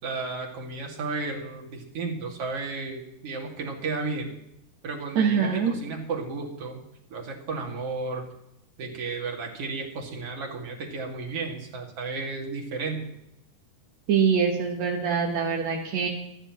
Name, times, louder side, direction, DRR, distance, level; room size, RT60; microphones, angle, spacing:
voice 1, 0.0-4.4 4.8-6.8 7.1-8.3 8.8-13.1, right 3 dB, 40° right, 0 dB, 2.6 m, -33 dB
voice 2, 5.2-5.7 14.1-16.1, right 6 dB, 65° right, -1 dB, 1.8 m, -24 dB
26.5 x 9.8 x 3.1 m, 0.83 s
omnidirectional pair, 4.7 m